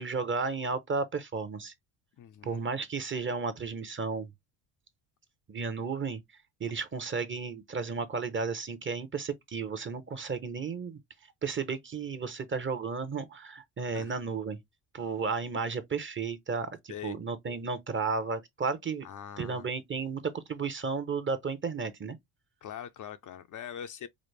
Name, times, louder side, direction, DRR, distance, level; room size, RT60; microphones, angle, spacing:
voice 1, 0.0-1.7 2.4-4.3 5.5-6.2 6.6-11.0 11.4-14.6 14.9-19.1 19.4-22.2, right 5 dB, 25° right, 0.8 m, -33 dB
voice 2, 2.2-2.6 13.9-14.1 16.9-17.2 19.0-19.7 22.6-24.1, left 9 dB, 40° left, 0.5 m, -42 dB
5.1 x 2.0 x 3.2 m
supercardioid pair, 90°, 48 cm